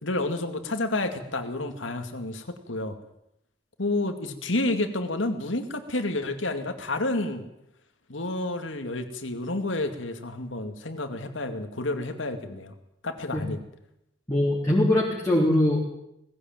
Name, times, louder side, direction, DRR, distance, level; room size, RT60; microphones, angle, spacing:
voice 1, 0.0-3.0 3.8-7.4 8.1-12.7 13.0-13.6, left 2 dB, 90° left, 7 dB, 2.4 m, -30 dB
voice 2, 14.3-15.8, left 1 dB, 15° left, -4 dB, 3.7 m, -22 dB
19.0 x 15.5 x 9.1 m, 0.81 s
head